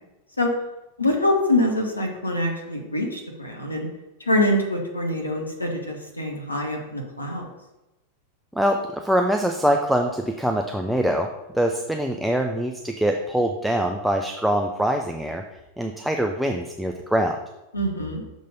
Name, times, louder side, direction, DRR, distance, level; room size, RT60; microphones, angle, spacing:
voice 1, 1.0-3.9 4.2-7.5 17.7-18.2, left 1 dB, 80° left, 1 dB, 1.0 m, -24 dB
voice 2, 8.5-11.3 11.5-15.4 15.8-17.4, equal, ahead, 3 dB, 0.5 m, -23 dB
6.5 x 3.9 x 5.3 m, 0.98 s
figure-of-eight pair, 90°, 0 cm